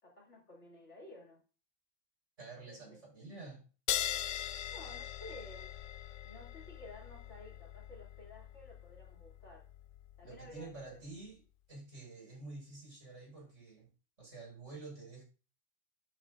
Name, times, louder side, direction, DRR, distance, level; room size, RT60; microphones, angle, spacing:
voice 1, 0.0-1.4 2.6-3.0 4.7-5.7 6.2-9.7 10.2-11.0, left 1 dB, 65° left, 3.1 m, -53 dB
voice 2, 2.4-3.6 10.2-11.4 11.7-13.9 14.2-15.2, right 3 dB, 75° right, 6.1 m, -49 dB
sound 1, 3.9-10.9, left 11 dB, 90° left, 1.0 m, -41 dB
11.0 x 9.2 x 2.6 m
omnidirectional pair, 1.3 m